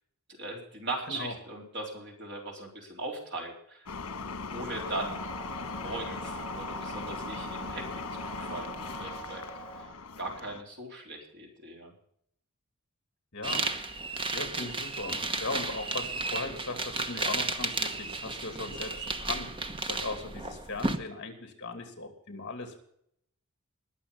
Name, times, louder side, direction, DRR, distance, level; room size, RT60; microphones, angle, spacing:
voice 1, 0.4-3.9 4.5-5.2 5.8-7.8 8.1-9.4 9.8-9.9 10.2-11.9, right 2 dB, 50° right, 0 dB, 4.1 m, -39 dB
sound 1, 3.9-10.6, left 4 dB, 85° left, 1.3 m, -39 dB
sound 2, 4.8-9.8, right 4 dB, 5° left, 4.1 m, -44 dB
voice 2, 13.3-13.7 14.1-22.8, left 3 dB, 55° left, 6 dB, 2.6 m, -38 dB
sound 3, 13.4-21.0, right 3 dB, 25° right, 1.0 m, -33 dB
21.0 x 7.1 x 5.5 m, 0.69 s
head